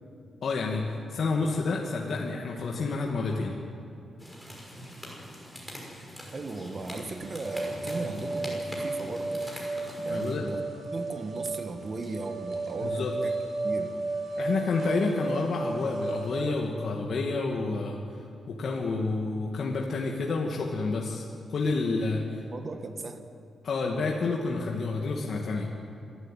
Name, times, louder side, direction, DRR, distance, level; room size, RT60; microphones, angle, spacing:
voice 1, 0.4-3.5 10.0-10.5 12.8-13.1 14.4-18.0 18.5-22.4 23.6-25.7, left 3 dB, 60° left, -1 dB, 2.1 m, -29 dB
sound 1, 4.2-10.3, equal, ahead, 5.9 m, -42 dB
voice 2, 6.3-9.4 10.0-10.6 10.9-13.4 13.6-13.9 22.5-23.3, right 3 dB, 35° right, 7 dB, 1.6 m, -37 dB
sound 2, 7.2-16.4, right 2 dB, 60° right, 4.3 m, -33 dB
26.5 x 12.5 x 9.2 m, 2.7 s
wide cardioid pair, 125°, 0 cm